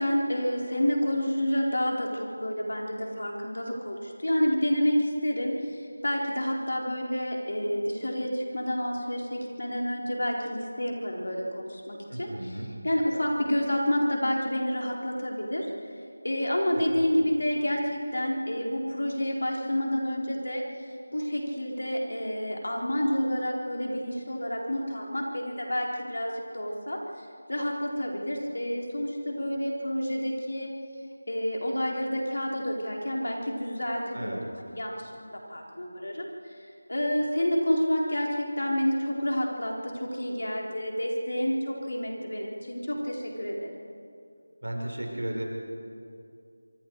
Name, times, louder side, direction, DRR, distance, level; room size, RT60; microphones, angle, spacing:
voice 1, 0.0-12.3 12.8-15.7 16.2-20.6 21.1-27.0 27.5-30.7 31.3-36.5 36.9-43.8, equal, 70° left, -1 dB, 4.3 m, -29 dB
voice 2, 12.1-12.7 17.0-17.1 34.1-34.4 44.6-45.4, right 1 dB, 80° right, 0 dB, 5.6 m, -34 dB
25.0 x 24.5 x 4.9 m, 2.4 s
figure-of-eight pair, 170°, 0 cm